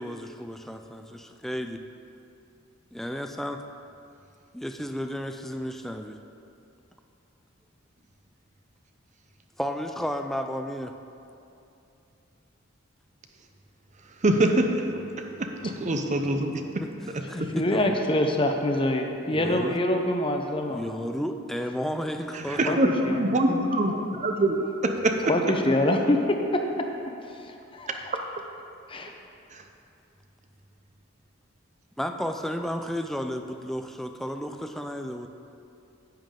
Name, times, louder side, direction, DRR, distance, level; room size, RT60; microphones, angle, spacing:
voice 1, 0.0-1.8 2.9-3.6 4.5-6.2 9.6-10.9 16.8-18.0 19.3-19.7 20.7-22.8 32.0-35.3, equal, ahead, 6 dB, 0.4 m, -33 dB
voice 2, 14.2-14.8 15.6-16.6 22.5-22.9 23.2-24.6 25.0-25.2, right 1 dB, 35° right, 4 dB, 0.7 m, -23 dB
voice 3, 17.3-20.8 22.6-23.7 25.3-26.9 27.3-28.1 28.9-29.1, left 1 dB, 25° left, 3 dB, 0.7 m, -26 dB
10.5 x 9.1 x 3.8 m, 2.7 s
head